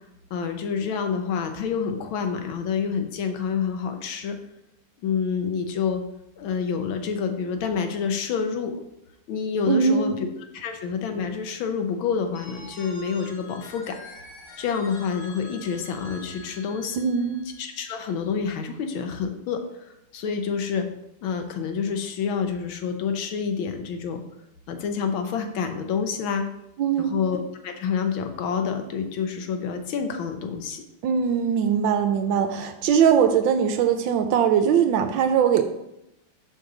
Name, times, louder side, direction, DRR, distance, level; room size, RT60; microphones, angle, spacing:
voice 1, 0.3-4.4 5.0-6.0 6.4-8.8 9.3-10.3 10.5-14.0 14.6-17.0 17.6-20.9 21.2-24.2 24.7-26.5 27.0-30.8, left 6 dB, 75° left, 6 dB, 1.4 m, -28 dB
voice 2, 9.7-10.1 17.0-17.4 26.8-27.2 31.0-35.6, right 7 dB, 75° right, 8 dB, 1.1 m, -21 dB
Telephone, 12.3-18.1, left 2 dB, 55° left, 1.9 m, -45 dB
6.2 x 5.4 x 3.8 m, 0.83 s
omnidirectional pair, 2.4 m